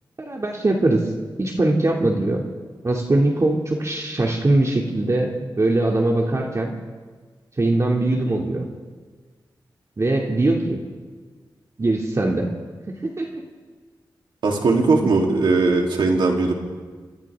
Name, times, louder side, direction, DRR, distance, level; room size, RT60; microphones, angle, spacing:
voice 1, 0.2-1.1 1.4-2.4 2.8-6.7 7.6-8.7 10.0-10.8 11.8-12.5 12.9-13.4 15.0-15.1, right 2 dB, 40° right, -1 dB, 2.7 m, -21 dB
voice 2, 14.4-16.5, right 3 dB, 85° right, 0 dB, 3.4 m, -19 dB
27.0 x 26.5 x 3.7 m, 1.5 s
cardioid pair, 70°, 8 cm